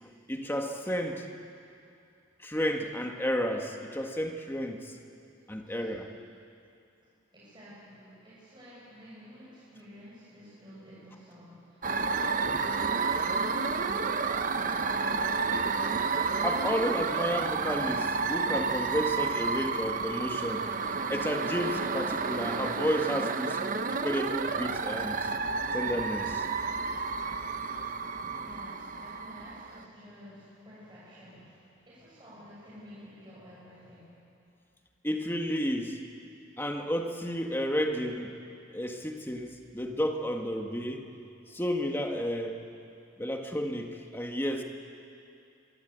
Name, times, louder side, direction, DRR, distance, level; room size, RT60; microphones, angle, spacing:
voice 1, 0.0-1.3 2.4-5.0 5.5-6.1 16.4-20.7 21.1-23.6 23.9-25.3 25.7-26.5 28.3-28.4 35.0-36.0 36.6-38.3 38.7-41.1 41.5-42.6 43.2-44.6, equal, 10° left, 3 dB, 1.7 m, -32 dB
voice 2, 5.6-6.0 7.3-15.2 28.4-34.1, equal, 25° right, -8 dB, 6.9 m, -51 dB
sound 1, 11.8-29.8, right 4 dB, 45° right, 0.9 m, -30 dB
24.5 x 24.0 x 8.2 m, 2.6 s
head